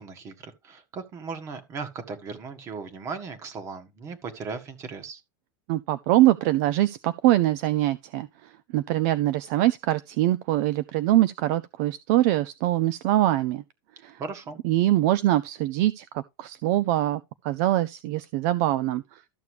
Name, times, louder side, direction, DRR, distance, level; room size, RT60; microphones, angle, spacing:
voice 1, 0.0-5.2 14.2-14.6, right 5 dB, 25° right, 1.7 m, -37 dB
voice 2, 5.7-8.3 8.7-13.6 14.0-14.2 14.6-19.0, right 15 dB, 50° right, 0.5 m, -23 dB
13.0 x 6.8 x 3.2 m
supercardioid pair, 165°, 11 cm